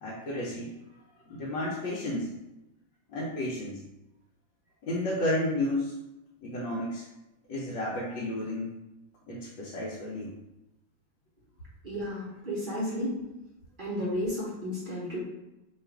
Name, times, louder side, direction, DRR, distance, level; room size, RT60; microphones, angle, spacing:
voice 1, 0.0-0.7 1.3-2.3 3.1-3.8 4.8-5.9 6.4-7.1 7.5-8.7 9.3-10.3, left 1 dB, 80° left, -6 dB, 1.4 m, -32 dB
voice 2, 11.8-13.1 13.8-15.2, equal, 40° right, -7 dB, 0.8 m, -32 dB
3.4 x 2.4 x 4.4 m, 0.95 s
omnidirectional pair, 2.0 m